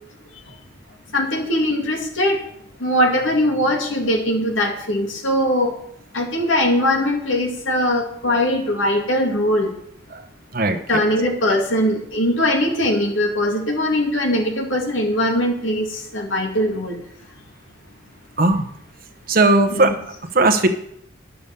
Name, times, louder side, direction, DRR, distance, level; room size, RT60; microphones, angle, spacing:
voice 1, 1.1-2.4 2.8-5.7 6.1-9.7 10.9-15.9 16.1-17.0 19.7-19.9, left 1 dB, 85° left, 2 dB, 2.3 m, -20 dB
voice 2, 19.3-20.0 20.3-20.7, right 2 dB, 50° right, 8 dB, 1.0 m, -17 dB
11.0 x 7.0 x 6.8 m, 0.72 s
head